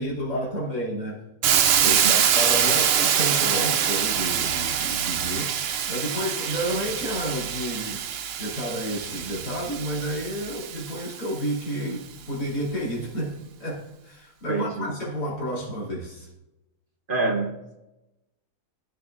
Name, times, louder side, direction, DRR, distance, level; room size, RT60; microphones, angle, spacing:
voice 1, 0.0-8.0 8.4-16.3, equal, 90° left, -6 dB, 3.4 m, -31 dB
Hiss, 1.4-11.3, right 8 dB, 70° right, 0.5 m, -25 dB
voice 2, 1.9-2.2 14.5-14.9 17.1-17.8, right 3 dB, 40° right, 0 dB, 0.9 m, -27 dB
14.5 x 6.6 x 2.5 m, 0.94 s
omnidirectional pair, 1.7 m